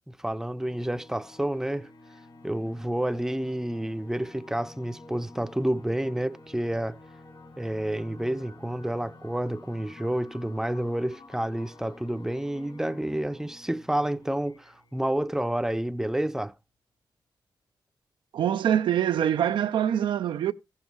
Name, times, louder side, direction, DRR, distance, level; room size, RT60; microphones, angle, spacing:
voice 1, 0.1-1.9 2.4-7.0 7.6-16.5, right 1 dB, 5° right, 0.5 m, -29 dB
sound 1, 0.6-15.9, left 2 dB, 70° left, 2.3 m, -50 dB
voice 2, 18.3-20.5, right 10 dB, 85° right, 0.4 m, -24 dB
14.5 x 7.2 x 3.0 m
cardioid pair, 65°, 8 cm